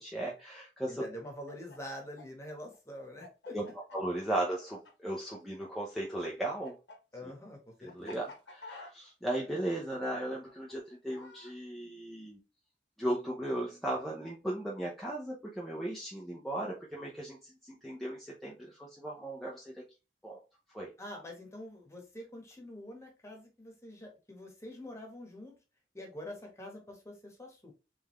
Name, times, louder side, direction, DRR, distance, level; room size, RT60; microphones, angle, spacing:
voice 1, 0.0-1.0 3.5-3.6 3.9-6.7 7.2-7.3 7.8-12.4 13.0-19.8 20.2-20.4 20.7-20.9, right 1 dB, ahead, -4 dB, 0.6 m, -36 dB
voice 2, 0.9-3.6 7.1-8.2 21.0-25.5 25.9-27.7, left 1 dB, 15° left, 1 dB, 1.3 m, -46 dB
Chicken rooster, 1.2-5.7 5.9-11.5, left 3 dB, 80° left, 1.2 m, -51 dB
3.7 x 3.5 x 3.1 m, 0.29 s
head